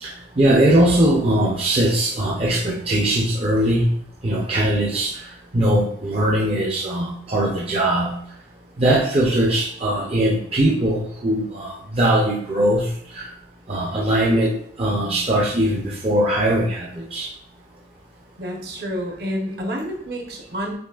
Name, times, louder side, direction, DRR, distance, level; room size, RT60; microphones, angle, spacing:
voice 1, 0.0-3.9 4.2-5.1 5.5-8.2 8.8-13.3 13.7-17.3, right 1 dB, 30° right, -3 dB, 0.5 m, -20 dB
voice 2, 18.4-20.7, equal, 55° right, 1 dB, 0.9 m, -29 dB
7.0 x 3.0 x 2.3 m, 0.65 s
head